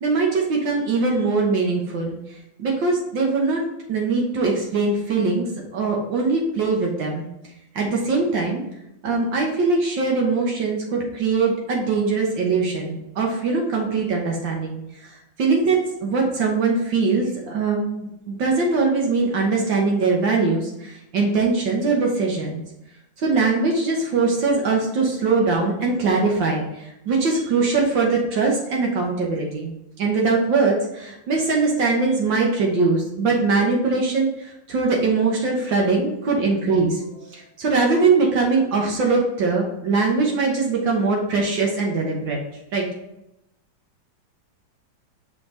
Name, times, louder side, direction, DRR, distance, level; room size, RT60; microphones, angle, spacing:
voice 1, 0.0-2.2 2.6-3.6 3.9-5.5 5.7-7.3 7.8-8.6 9.0-14.8 15.4-22.6 23.2-26.6 27.1-29.7 30.0-34.3 34.7-42.4 42.7-42.9, right 4 dB, 70° right, 0 dB, 1.8 m, -21 dB
6.1 x 4.5 x 3.8 m, 0.87 s
omnidirectional pair, 2.2 m